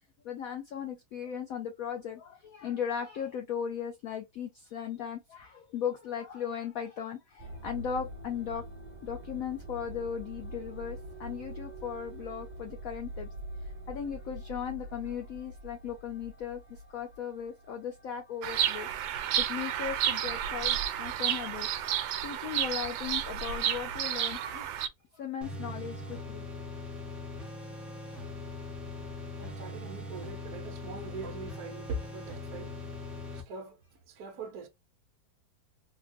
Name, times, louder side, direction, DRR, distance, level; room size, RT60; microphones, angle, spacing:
voice 1, 0.2-8.7 9.0-13.3 13.6-18.9 19.4-24.7 25.1-26.5, left 8 dB, 80° left, 0.7 m, -37 dB
sound 1, 7.4-21.5, right 1 dB, 25° right, 1.4 m, -45 dB
Bird vocalization bird call bird song, 18.4-24.9, right 10 dB, 90° right, 1.3 m, -31 dB
sound 2, 25.4-33.4, left 2 dB, ahead, 0.4 m, -41 dB
voice 2, 29.4-32.8 33.3-33.8 34.1-34.7, right 3 dB, 65° right, 1.1 m, -41 dB
3.6 x 2.3 x 2.4 m
omnidirectional pair, 2.0 m